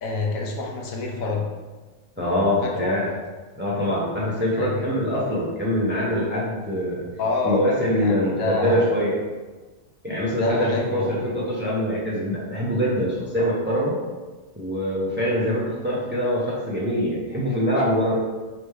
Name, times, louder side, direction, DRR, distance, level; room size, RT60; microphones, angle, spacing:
voice 1, 0.0-1.5 2.6-2.9 4.6-4.7 7.2-7.7 8.0-8.8 10.4-11.3, left 3 dB, 80° left, -1 dB, 1.2 m, -27 dB
voice 2, 2.2-3.1 3.6-7.0 7.4-9.2 10.0-14.0 14.6-18.1, equal, 10° right, -6 dB, 0.6 m, -24 dB
3.4 x 3.0 x 4.6 m, 1.3 s
omnidirectional pair, 1.5 m